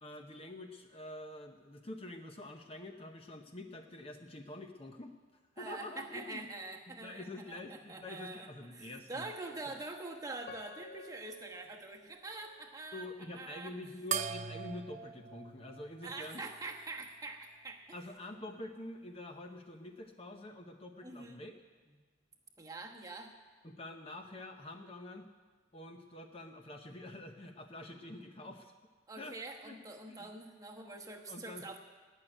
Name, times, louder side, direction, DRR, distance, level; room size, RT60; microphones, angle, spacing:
voice 1, 0.0-5.1 5.6-6.4 6.9-9.3 12.9-16.4 17.9-21.5 23.6-25.3 25.7-28.7 29.1-29.4 29.6-29.8 30.1-30.3 31.3-31.8, left 1 dB, 30° left, 5 dB, 0.8 m, -46 dB
voice 2, 5.6-8.5 8.7-13.1 13.3-13.7 16.0-18.0 21.0-21.4 22.6-23.3 29.1-31.8, right 2 dB, 15° right, 2 dB, 1.1 m, -45 dB
Piano, 10.4-13.5 14.0-14.1 14.8-15.0, left 4 dB, 50° left, 0.4 m, -55 dB
sound 1, 14.1-16.9, right 7 dB, 35° right, 0.3 m, -41 dB
18.0 x 6.5 x 10.0 m, 1.4 s
head